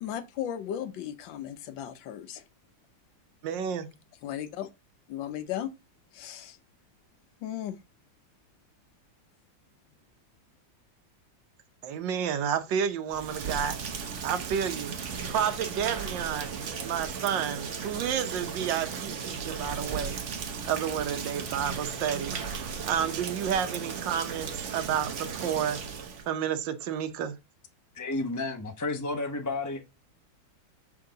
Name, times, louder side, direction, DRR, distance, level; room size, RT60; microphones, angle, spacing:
voice 1, 0.0-2.4 4.2-4.7 5.1-5.7 6.1-6.6 7.4-7.8, left 10 dB, 80° left, 1.5 m, -36 dB
voice 2, 3.4-3.9 11.8-13.8 14.2-20.2 20.7-22.4 22.8-25.8 26.3-27.4, right 8 dB, 75° right, 1.5 m, -30 dB
Rain, 13.1-26.3, right 6 dB, 50° right, 1.0 m, -36 dB
voice 3, 27.9-29.8, left 2 dB, 20° left, 0.5 m, -31 dB
7.5 x 3.6 x 3.8 m
omnidirectional pair, 2.0 m